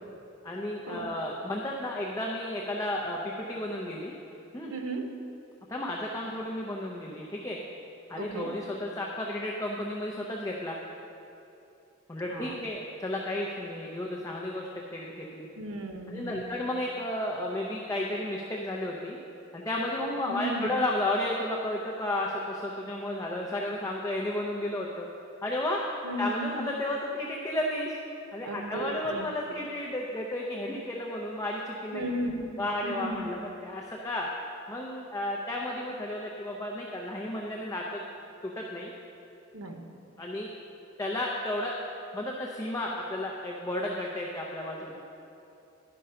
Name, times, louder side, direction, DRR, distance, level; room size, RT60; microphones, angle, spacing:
voice 1, 0.4-4.1 4.5-4.7 5.7-7.6 8.1-10.8 12.1-15.5 16.1-19.2 19.5-25.1 25.4-25.8 26.2-28.0 28.3-32.1 32.6-34.3 34.7-38.0 38.4-38.9 40.2-40.5 41.0-41.8 42.1-45.0, left 1 dB, 15° left, -2 dB, 0.6 m, -33 dB
voice 2, 4.7-5.0 8.2-8.5 12.3-12.6 15.6-16.6 20.3-20.7 26.0-26.7 28.4-29.3 31.9-33.3 39.5-39.8, right 1 dB, 80° right, 3 dB, 0.9 m, -35 dB
11.0 x 5.3 x 5.6 m, 2.8 s
head